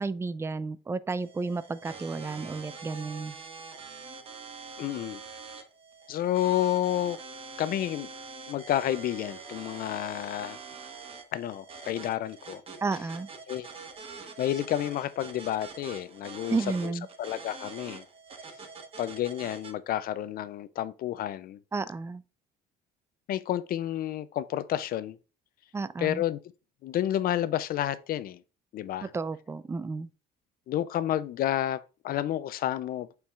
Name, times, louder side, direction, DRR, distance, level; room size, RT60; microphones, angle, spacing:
voice 1, 0.0-3.3 12.8-13.3 16.5-17.1 21.7-22.2 25.7-26.2 29.0-30.1, right 4 dB, 15° right, 0.4 m, -32 dB
sound 1, 1.2-19.7, right 4 dB, 35° right, 1.1 m, -45 dB
voice 2, 4.8-5.2 6.1-7.2 7.6-8.1 8.5-10.6 11.3-12.6 13.5-13.7 14.4-16.6 16.8-16.9 17.2-18.0 19.0-21.6 23.3-25.2 26.0-26.4 26.8-28.4 28.7-29.1 30.7-33.1, left 12 dB, 60° left, 0.5 m, -30 dB
8.5 x 4.6 x 2.4 m
cardioid pair, 110°, 17 cm